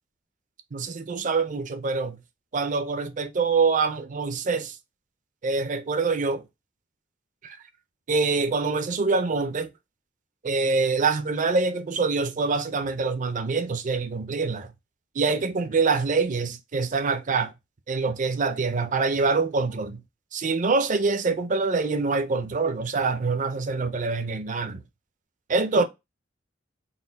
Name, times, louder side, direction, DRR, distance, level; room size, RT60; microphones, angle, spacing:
voice 1, 0.7-2.2 2.5-4.8 5.4-6.4 7.4-7.6 8.1-9.7 10.4-14.7 15.1-17.5 17.9-20.0 20.3-24.8 25.5-25.8, right 4 dB, 40° right, 0.5 m, -25 dB
4.1 x 2.1 x 4.0 m
head